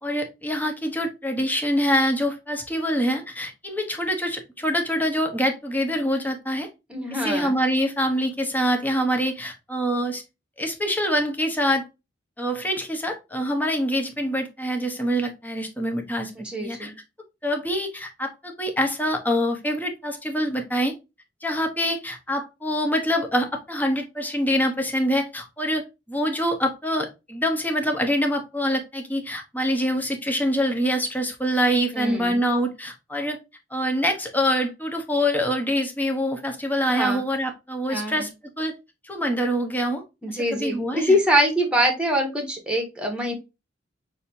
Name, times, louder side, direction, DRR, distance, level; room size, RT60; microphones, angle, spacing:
voice 1, 0.0-6.7 7.1-10.2 10.6-11.8 12.4-16.9 17.4-20.9 21.4-33.4 33.7-38.3 38.6-38.7 39.0-40.0 40.3-41.1, equal, 10° left, 3 dB, 1.1 m, -25 dB
voice 2, 6.9-7.5 16.4-16.9 31.9-32.4 36.9-37.2 37.9-38.3 40.2-43.3, equal, 5° right, 3 dB, 1.4 m, -24 dB
6.3 x 2.9 x 2.6 m, 0.25 s
head